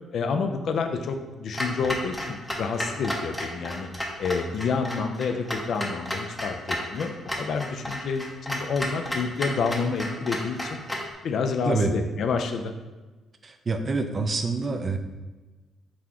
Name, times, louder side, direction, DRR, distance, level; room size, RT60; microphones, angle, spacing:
voice 1, 0.1-3.9 4.2-7.1 7.4-10.8 11.2-12.7, left 5 dB, 65° left, 6 dB, 0.4 m, -28 dB
Clock, 1.5-11.1, left 1 dB, 10° left, 0.7 m, -33 dB
voice 2, 11.7-12.0 13.4-15.0, right 3 dB, 40° right, 7 dB, 0.4 m, -26 dB
4.0 x 3.6 x 2.9 m, 1.2 s
cardioid pair, 90°, 0 cm